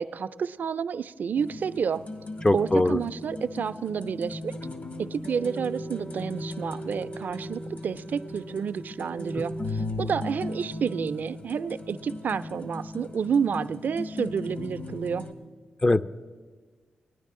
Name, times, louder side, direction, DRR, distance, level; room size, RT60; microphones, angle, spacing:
voice 1, 0.0-2.0 2.5-4.5 5.0-15.3, right 6 dB, 65° right, 14 dB, 0.4 m, -30 dB
sound 1, 1.4-15.3, left 1 dB, 60° left, 1.3 m, -37 dB
voice 2, 2.4-3.0 15.8-16.1, left 2 dB, 25° left, 12 dB, 0.4 m, -21 dB
20.0 x 9.9 x 3.7 m, 1.5 s
supercardioid pair, 40°, 3 cm